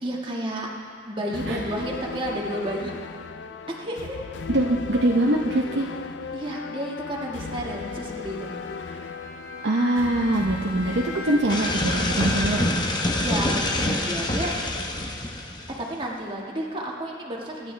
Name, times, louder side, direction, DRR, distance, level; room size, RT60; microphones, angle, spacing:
voice 1, 0.0-0.7 1.1-2.9 3.7-4.2 6.3-8.5 13.2-14.5 15.8-17.7, right 1 dB, 30° right, -2 dB, 1.6 m, -31 dB
sound 1, 1.3-13.3, left 5 dB, 70° left, 0.5 m, -37 dB
voice 2, 4.5-5.9 9.6-12.9, right 1 dB, 65° right, -2 dB, 0.8 m, -23 dB
Bowed string instrument, 8.4-14.8, left 2 dB, 50° left, 1.1 m, -41 dB
sound 2, 11.5-15.9, left 1 dB, 25° left, 0.9 m, -26 dB
23.0 x 10.0 x 3.3 m, 2.3 s
head